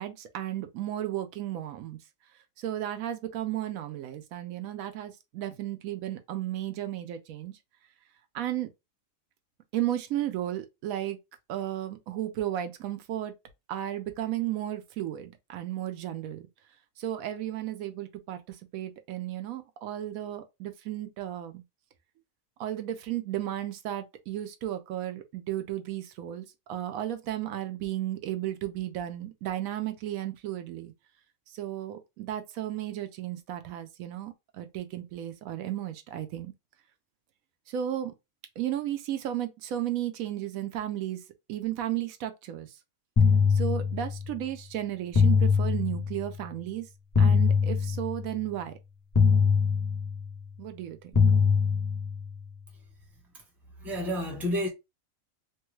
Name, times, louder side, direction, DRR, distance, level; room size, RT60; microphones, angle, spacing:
voice 1, 0.0-2.0 2.6-7.6 8.3-8.7 9.7-11.2 11.5-13.3 13.7-16.5 17.0-21.6 22.6-30.9 31.5-36.5 37.7-38.1 38.6-41.2 41.5-42.8 43.5-46.9 47.2-48.8 50.6-51.1, right 12 dB, 85° right, 1.0 m, -34 dB
sound 1, 43.2-44.3 45.1-46.3 47.1-48.3 49.1-50.3 51.1-52.3, left 5 dB, 30° left, 0.3 m, -23 dB
voice 2, 53.8-54.7, equal, ahead, 0.7 m, -30 dB
3.1 x 2.3 x 3.0 m
omnidirectional pair, 1.4 m